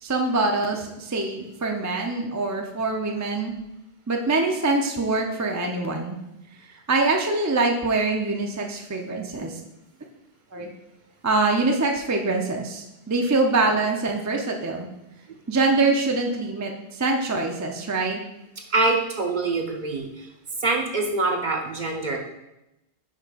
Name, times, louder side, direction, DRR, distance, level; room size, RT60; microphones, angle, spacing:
voice 1, 0.0-3.5 4.1-6.2 6.9-9.6 10.5-10.7 11.2-14.9 15.5-18.2, right 3 dB, 20° right, 2 dB, 0.6 m, -24 dB
voice 2, 18.7-20.3 20.6-22.2, right 3 dB, 45° right, 2 dB, 0.9 m, -25 dB
5.6 x 4.9 x 4.9 m, 0.91 s
omnidirectional pair, 1.1 m